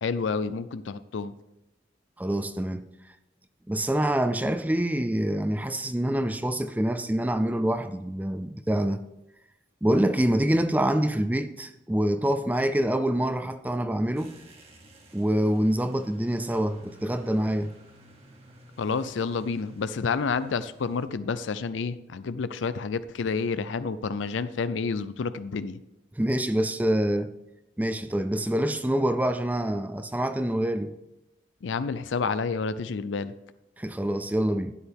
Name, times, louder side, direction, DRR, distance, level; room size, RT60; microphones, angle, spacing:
voice 1, 0.0-1.3 18.8-25.8 31.6-33.3, left 5 dB, 90° left, 0.4 m, -29 dB
voice 2, 2.2-2.9 3.7-9.0 9.8-14.3 15.1-17.7 26.2-27.3 27.8-30.9 33.8-34.7, right 1 dB, 10° right, 0.4 m, -26 dB
sound 1, 14.2-21.1, right 1 dB, 30° right, 1.6 m, -53 dB
12.5 x 10.0 x 3.5 m
head